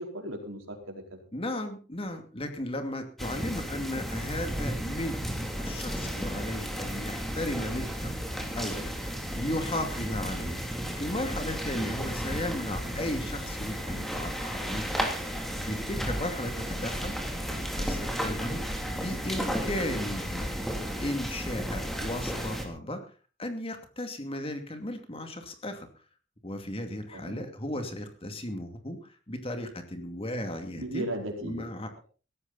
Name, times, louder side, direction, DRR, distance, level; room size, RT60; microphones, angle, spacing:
voice 1, 0.0-1.2 3.2-3.4 27.1-27.4 27.7-27.9 30.7-31.7, right 1 dB, 80° right, 2 dB, 4.8 m, -37 dB
voice 2, 1.3-8.2 8.6-10.6 10.9-15.1 15.6-17.2 17.5-20.5 21.0-23.1 23.4-25.9 26.4-31.1 31.4-32.0, left 1 dB, 30° left, 6 dB, 2.5 m, -35 dB
sound 1, 3.2-22.7, equal, ahead, 2.9 m, -33 dB
17.0 x 15.0 x 4.2 m, 0.36 s
head